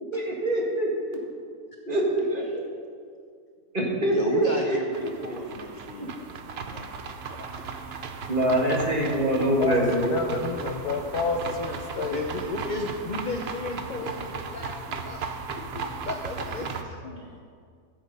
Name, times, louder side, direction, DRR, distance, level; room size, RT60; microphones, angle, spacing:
voice 1, 0.1-1.2 1.9-2.7 3.7-5.1 6.0-6.1 8.3-10.1, right 1 dB, 35° right, -2 dB, 1.8 m, -25 dB
voice 2, 4.1-7.1 12.1-17.4, left 2 dB, 40° left, 2 dB, 0.7 m, -34 dB
sound 1, 4.9-16.8, right 5 dB, 55° right, 0.8 m, -36 dB
voice 3, 9.6-12.2, left 4 dB, 80° left, 5 dB, 1.4 m, -29 dB
14.0 x 7.4 x 5.4 m, 2.2 s
omnidirectional pair, 1.7 m